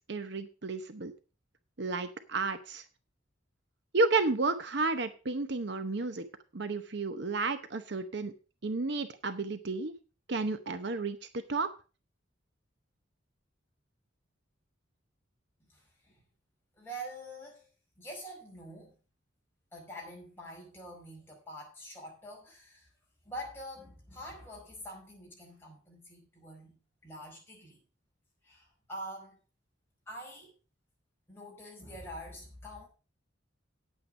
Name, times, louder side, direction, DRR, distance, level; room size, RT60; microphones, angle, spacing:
voice 1, 0.1-1.1 1.8-2.8 3.9-6.2 6.5-8.3 8.6-10.0 10.3-11.2 11.5-11.7, right 3 dB, 60° right, 0.8 m, -32 dB
voice 2, 15.6-16.2 16.7-17.7 18.0-18.9 19.7-22.9 23.2-26.8 27.0-27.8 28.4-29.4 30.1-30.5 31.3-32.9, equal, 10° left, 5.1 m, -45 dB
9.5 x 8.8 x 5.3 m
head